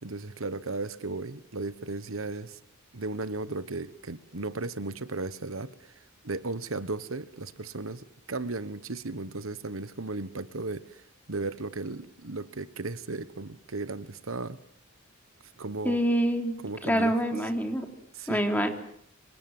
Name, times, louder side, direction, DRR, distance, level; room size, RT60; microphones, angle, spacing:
voice 1, 0.0-2.6 2.9-14.6 15.6-16.0 16.6-17.1 18.1-18.4, right 3 dB, 80° right, 14 dB, 1.3 m, -35 dB
voice 2, 15.9-16.6 16.8-17.9 18.3-18.7, equal, 10° left, 4 dB, 3.5 m, -26 dB
26.5 x 26.0 x 7.9 m, 0.69 s
head